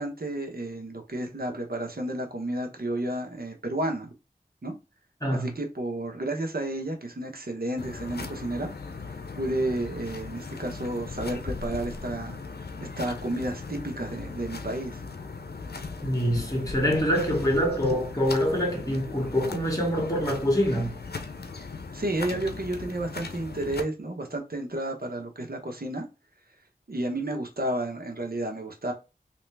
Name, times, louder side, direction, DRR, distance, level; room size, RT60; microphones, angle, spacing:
voice 1, 0.0-4.1 4.6-4.7 5.3-8.7 9.3-12.4 12.8-15.0 21.9-26.1 26.9-28.9, right 1 dB, 70° right, 1.1 m, -31 dB
sound 1, 7.8-23.8, left 4 dB, 85° left, 0.6 m, -38 dB
voice 2, 16.0-21.0, equal, 20° left, 1.8 m, -25 dB
3.3 x 2.9 x 3.3 m
wide cardioid pair, 40°, 16 cm